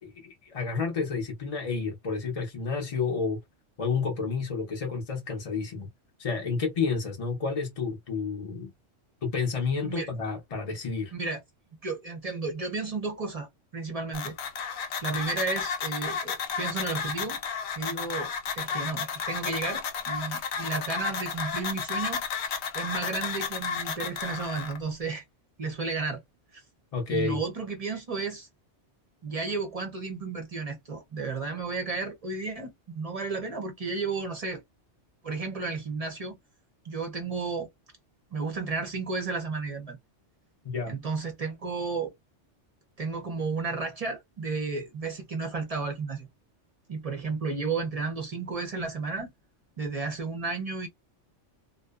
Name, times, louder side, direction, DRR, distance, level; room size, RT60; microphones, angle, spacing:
voice 1, 0.0-3.4 3.8-5.9 6.2-8.7 9.2-11.1 26.9-27.4 40.6-40.9, left 5 dB, 45° left, 0.5 m, -30 dB
voice 2, 11.8-14.4 14.8-17.4 17.8-22.2 22.7-25.2 25.6-26.2 26.5-26.6 27.1-28.5 29.2-34.6 35.2-36.4 36.8-37.7 38.3-40.0 40.9-42.1 43.0-46.3 46.9-49.3 49.8-50.9, right 4 dB, 45° right, 0.5 m, -33 dB
sound 1, 14.1-24.8, left 6 dB, 70° left, 0.8 m, -33 dB
2.7 x 2.0 x 2.2 m
omnidirectional pair, 1.2 m